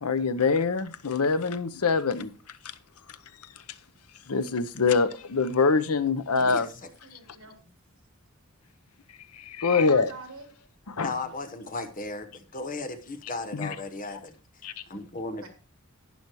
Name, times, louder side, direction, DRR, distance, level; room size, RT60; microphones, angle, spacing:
voice 1, 0.0-2.3 4.3-6.7 9.3-10.1 10.9-11.1 13.5-13.7 14.6-14.7, left 4 dB, 85° left, 0.8 m, -24 dB
voice 2, 6.8-7.7 9.7-10.5 15.4-15.5, right 3 dB, 65° right, 3.7 m, -45 dB
voice 3, 11.0-14.4 14.9-15.5, left 3 dB, 40° left, 1.2 m, -35 dB
11.5 x 9.7 x 3.0 m
head